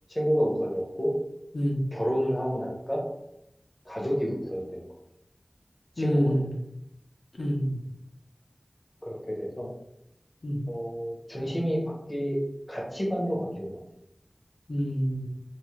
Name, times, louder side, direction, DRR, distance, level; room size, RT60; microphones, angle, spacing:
voice 1, 0.1-1.2 1.9-3.0 3.9-4.9 6.0-6.4 9.0-9.7 10.7-12.4 12.7-13.8, equal, 25° left, -2 dB, 0.8 m, -29 dB
voice 2, 6.0-6.5 7.4-7.8 10.4-10.6 14.7-15.3, equal, 75° left, -2 dB, 0.5 m, -27 dB
2.5 x 2.4 x 3.1 m, 0.83 s
wide cardioid pair, 50°, 0 cm